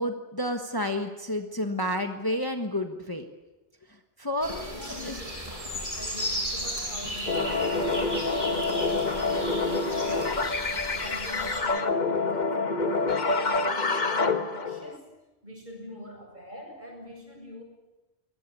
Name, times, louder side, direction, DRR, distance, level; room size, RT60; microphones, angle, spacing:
voice 1, 0.0-3.2 4.2-5.2, left 1 dB, 20° left, 5 dB, 1.4 m, -30 dB
sound 1, 4.4-11.6, equal, 30° right, 7.9 m, -35 dB
voice 2, 4.5-5.5 6.0-15.1 15.4-17.6, equal, 50° right, 1 dB, 7.6 m, -44 dB
sound 2, 7.3-15.0, left 3 dB, 45° left, 1.4 m, -27 dB
23.5 x 19.5 x 8.5 m, 1.1 s
omnidirectional pair, 1.1 m